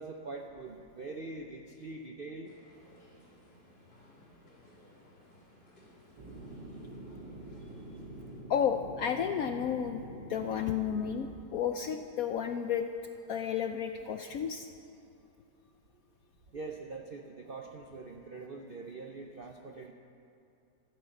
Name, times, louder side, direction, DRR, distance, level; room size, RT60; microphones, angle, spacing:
voice 1, 0.0-2.5 16.5-19.9, right 3 dB, 60° right, 2 dB, 0.6 m, -43 dB
sound 1, 2.4-8.4, equal, 25° left, 3.7 m, -60 dB
sound 2, 6.2-11.2, right 1 dB, 80° right, 2.1 m, -46 dB
voice 2, 8.5-12.9 13.3-14.7, left 8 dB, 70° left, 7 dB, 0.8 m, -32 dB
14.0 x 9.6 x 8.0 m, 2.7 s
omnidirectional pair, 2.0 m